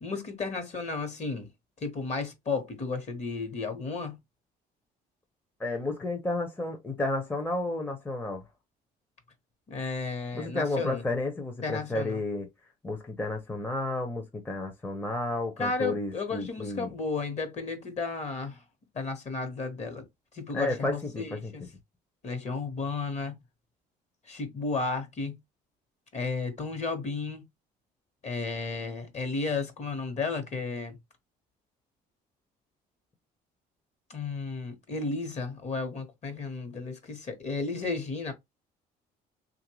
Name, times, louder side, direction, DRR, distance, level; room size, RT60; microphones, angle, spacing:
voice 1, 0.0-1.5 1.8-4.2 9.7-11.0 11.6-12.2 15.6-18.6 18.9-20.0 20.3-21.6 22.2-23.4 24.3-25.3 26.1-27.4 28.2-31.0 34.1-38.3, left 4 dB, 40° left, 1.2 m, -33 dB
voice 2, 5.6-8.4 10.3-12.5 12.8-16.9 20.5-21.5, left 2 dB, 10° left, 0.7 m, -32 dB
3.2 x 2.5 x 2.9 m
cardioid pair, 110°, 17 cm